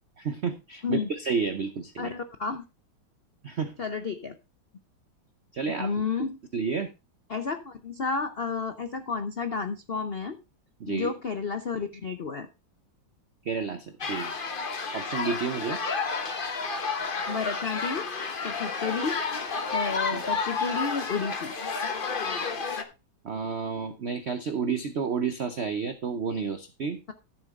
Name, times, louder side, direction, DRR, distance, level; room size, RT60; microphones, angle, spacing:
voice 1, 0.2-2.1 3.4-3.7 5.5-5.9 6.2-6.3 6.5-6.9 10.8-11.1 13.4-14.3 14.9-15.8 20.1-20.2 23.2-27.0, right 5 dB, 75° right, 10 dB, 0.6 m, -30 dB
voice 2, 2.0-2.6 3.8-4.4 5.8-6.4 7.3-10.4 10.9-12.5 17.3-18.1 18.4-19.2 19.7-21.5, left 5 dB, 70° left, 9 dB, 0.5 m, -31 dB
sound 1, 14.0-22.8, left 4 dB, 35° left, 1.0 m, -31 dB
13.0 x 7.3 x 3.6 m, 0.27 s
omnidirectional pair, 2.2 m